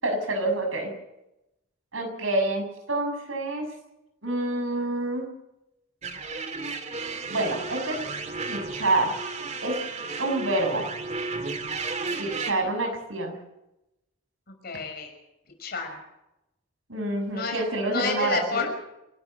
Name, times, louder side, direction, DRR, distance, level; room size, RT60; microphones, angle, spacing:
voice 1, 0.0-0.9 1.9-3.7 4.2-5.3 7.3-8.0 8.5-9.1 9.6-9.7 10.1-10.8 12.2-13.4 16.9-18.7, right 2 dB, 80° right, 4 dB, 6.7 m, -27 dB
sound 1, 6.0-12.5, right 4 dB, 35° right, 2.0 m, -33 dB
voice 2, 14.6-15.1 15.6-16.0 17.3-17.6 17.9-18.7, left 4 dB, 50° left, 4 dB, 5.7 m, -30 dB
28.0 x 13.0 x 7.8 m, 0.91 s
head